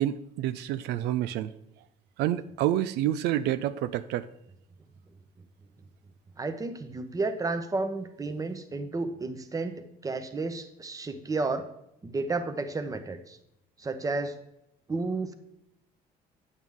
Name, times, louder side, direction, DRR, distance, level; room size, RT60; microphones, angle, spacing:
voice 1, 0.0-1.5 2.2-4.3, right 12 dB, 85° right, 13 dB, 0.4 m, -28 dB
voice 2, 6.4-11.7 12.0-13.4 13.8-14.3 14.9-15.3, right 3 dB, 20° right, 8 dB, 0.9 m, -32 dB
9.0 x 8.2 x 3.6 m, 0.81 s
cardioid pair, 110°, 17 cm